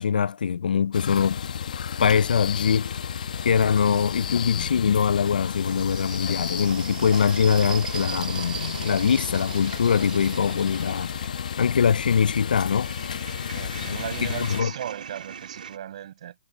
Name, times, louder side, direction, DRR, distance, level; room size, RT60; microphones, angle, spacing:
voice 1, 0.0-1.4 2.0-2.9 3.4-11.1 11.6-12.9 13.9-14.0 14.4-14.7, left 7 dB, 80° left, 0.3 m, -22 dB
sound 1, 0.9-14.6, left 7 dB, 60° left, 0.9 m, -32 dB
Wind instrument woodwind instrument, 1.3-13.5, right 5 dB, 90° right, 7.5 m, -55 dB
sound 2, 2.5-4.5 5.3-15.8, right 7 dB, 70° right, 1.9 m, -40 dB
voice 2, 13.5-16.3, right 10 dB, 50° right, 5.9 m, -37 dB
hypercardioid pair, 165°, 5 cm